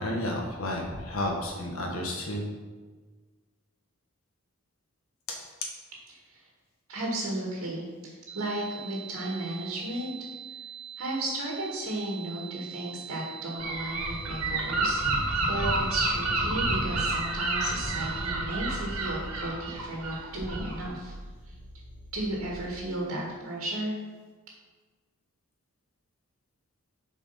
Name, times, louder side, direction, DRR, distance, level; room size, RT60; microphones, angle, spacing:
voice 1, 0.0-2.5 5.3-5.4, left 1 dB, 65° left, 0 dB, 1.6 m, -31 dB
voice 2, 6.9-10.1 11.0-21.1 22.1-24.0, right 1 dB, 70° right, -3 dB, 1.9 m, -34 dB
sound 1, 8.3-18.3, right 8 dB, 30° right, 0.9 m, -43 dB
Gull seagull / Wind, 13.6-20.9, right 2 dB, 85° right, 1.7 m, -30 dB
sound 2, 14.0-22.5, equal, 25° left, 2.4 m, -44 dB
7.6 x 4.6 x 5.9 m, 1.4 s
head